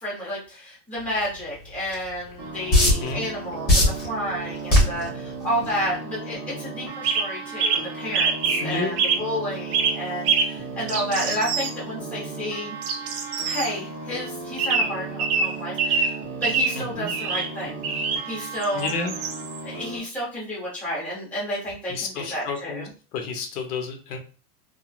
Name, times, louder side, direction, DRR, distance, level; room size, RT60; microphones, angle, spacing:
voice 1, 0.0-12.8 13.4-17.9 18.2-18.9 19.6-22.9, equal, 5° left, -7 dB, 0.8 m, -31 dB
sound 1, 1.9-2.0 2.7-3.1 3.7-4.1 4.7-5.0 5.7-5.9, left 1 dB, 20° left, 1.2 m, -16 dB
sound 2, 2.4-20.0, right 3 dB, 30° right, 0.7 m, -36 dB
voice 2, 2.8-3.2 8.6-9.0 16.8-17.1 18.7-19.1 21.9-24.2, left 4 dB, 75° left, 5 dB, 0.8 m, -31 dB
sound 3, 7.0-7.3 7.6-7.9 8.1-8.7 9.0-9.3 9.7-10.0 10.2-10.5 10.9-11.7 12.8-13.7 14.6-16.2 16.4-16.8 17.1-17.5 17.8-18.2 18.6-19.6, right 5 dB, 70° right, 0.7 m, -24 dB
3.0 x 2.2 x 2.3 m, 0.37 s
supercardioid pair, 150°, 47 cm